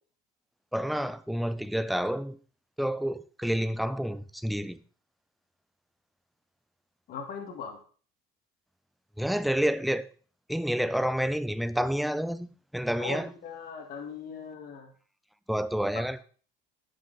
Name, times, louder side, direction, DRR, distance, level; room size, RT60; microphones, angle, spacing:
voice 1, 0.7-2.4 2.8-4.8 9.2-10.1 10.5-13.3 15.5-16.2, equal, ahead, 0.3 m, -29 dB
voice 2, 7.1-7.8 13.0-14.9 15.9-16.0, left 5 dB, 45° left, 2.0 m, -39 dB
11.5 x 6.3 x 4.0 m
cardioid pair, 155°, 20 cm